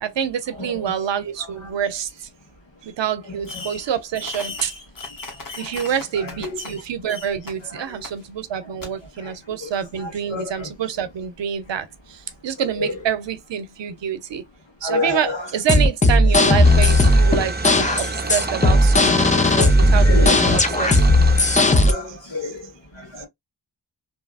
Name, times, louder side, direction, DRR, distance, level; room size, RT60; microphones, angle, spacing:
voice 1, 0.0-2.1 2.8-4.7 5.6-11.9 12.4-14.4 14.8-18.0 18.3-20.9, right 8 dB, 75° right, 0.6 m, -26 dB
voice 2, 0.6-0.9 3.5-3.6 5.3-5.7 6.2-6.6 7.7-8.0 9.2-9.3 9.6-9.7 10.0-10.7 12.8-13.0 14.8-15.5 18.4-18.6 19.4-19.7 20.0-20.4 21.5-23.3, left 3 dB, 80° left, 1.4 m, -30 dB
Fireworks, 3.5-3.9 4.1-6.8 7.1-7.5 8.0-8.1 8.8-8.9, left 3 dB, 50° left, 1.1 m, -36 dB
sound 1, 15.5-21.9, left 1 dB, 15° left, 0.5 m, -15 dB
sound 2, 16.6-21.6, right 3 dB, 20° right, 0.6 m, -29 dB
2.9 x 2.3 x 2.3 m
cardioid pair, 40°, 44 cm